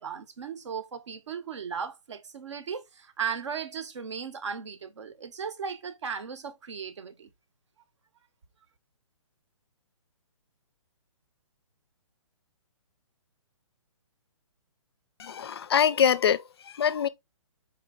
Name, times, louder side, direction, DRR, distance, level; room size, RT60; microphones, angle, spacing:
voice 1, 0.0-7.3, right 6 dB, 60° right, 0.7 m, -36 dB
voice 2, 15.2-17.1, left 8 dB, 50° left, 0.4 m, -24 dB
4.4 x 4.1 x 2.4 m
hypercardioid pair, 170°, 17 cm